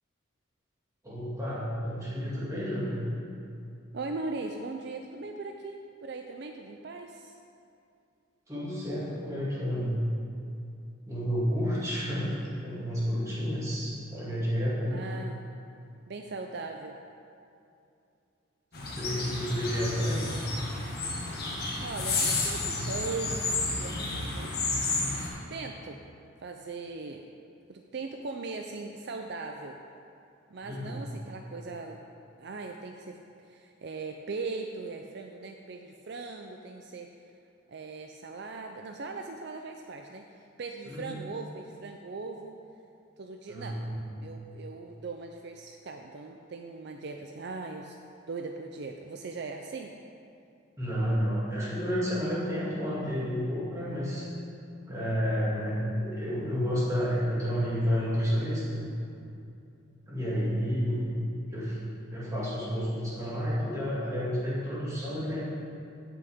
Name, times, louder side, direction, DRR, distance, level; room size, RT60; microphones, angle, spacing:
voice 1, 1.0-3.0 8.5-10.0 11.1-15.0 18.9-20.3 30.6-31.0 40.8-41.2 43.5-44.0 50.8-54.2 54.9-58.8 59.2-59.3 60.1-61.1 61.5-61.8 62.1-65.4, equal, 15° right, -8 dB, 2.2 m, -30 dB
voice 2, 3.9-7.3 14.9-15.4 16.1-17.0 21.8-24.5 25.5-26.0 26.4-27.2 27.7-29.8 30.5-32.0 32.4-37.1 37.7-42.6 43.2-43.8 44.2-48.0 48.3-49.9, right 3 dB, 55° right, 3 dB, 0.4 m, -39 dB
sound 1, 18.7-25.3, left 3 dB, 50° left, 1.8 m, -31 dB
15.5 x 6.0 x 3.6 m, 2.6 s
head